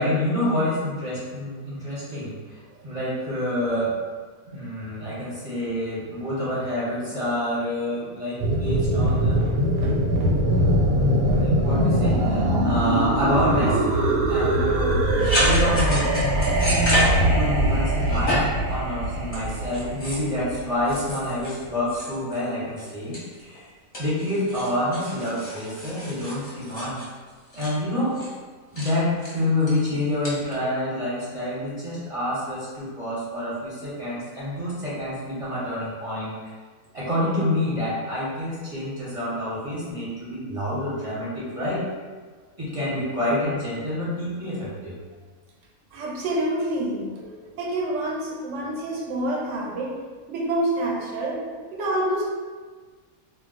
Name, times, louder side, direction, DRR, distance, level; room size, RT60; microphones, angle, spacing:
voice 1, 0.0-3.9 4.5-9.4 11.0-11.1 11.4-13.8 14.3-15.1 15.4-23.7 24.0-27.0 27.5-28.2 28.7-36.5 36.9-41.8 42.6-45.0, left 1 dB, 30° right, -9 dB, 0.6 m, -27 dB
sound 1, 8.4-21.1, right 1 dB, 90° right, 1.1 m, -22 dB
voice 2, 10.8-11.5 45.9-50.0 50.3-51.5 51.7-52.3, right 1 dB, 65° right, -2 dB, 0.8 m, -28 dB
sound 2, 15.2-17.7 18.0-18.6 19.3-20.3 20.9-22.5 22.8-23.6 23.9-27.7 28.1-28.4 28.8-28.9 29.2-29.7 30.2-30.5, equal, 30° left, 0.7 m, -29 dB
2.3 x 2.2 x 3.8 m, 1.5 s
omnidirectional pair, 1.5 m